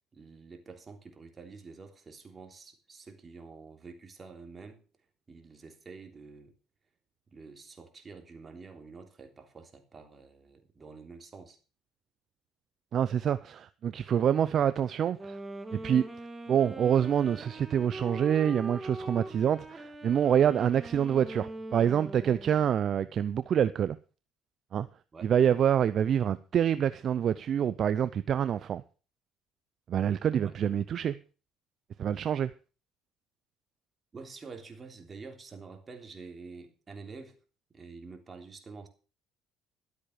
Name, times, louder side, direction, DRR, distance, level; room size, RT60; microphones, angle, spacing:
voice 1, 0.1-4.8 5.3-6.5 7.3-11.6 25.1-25.3 30.4-30.6 34.1-37.4 37.7-38.9, right 4 dB, 30° right, 3.4 m, -48 dB
voice 2, 12.9-15.4 15.7-16.0 16.5-24.0 24.7-24.9 25.2-28.8 29.9-31.2 32.0-32.5, right 9 dB, 55° right, 0.6 m, -26 dB
Wind instrument woodwind instrument, 15.1-22.8, right 1 dB, 10° right, 2.4 m, -42 dB
12.5 x 8.4 x 6.7 m
supercardioid pair, 85°, 0 cm